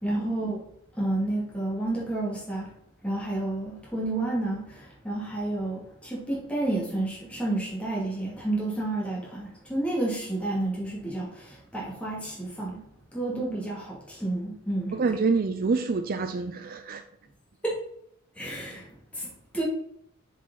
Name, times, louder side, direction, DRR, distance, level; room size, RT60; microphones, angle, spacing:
voice 1, 0.0-0.6 1.0-2.7 3.0-12.8 13.1-14.9 17.6-17.8 18.4-19.6, right 2 dB, 5° left, -5 dB, 2.5 m, -30 dB
voice 2, 14.9-17.0, right 4 dB, 40° right, 9 dB, 0.4 m, -27 dB
7.0 x 5.0 x 4.1 m, 0.69 s
head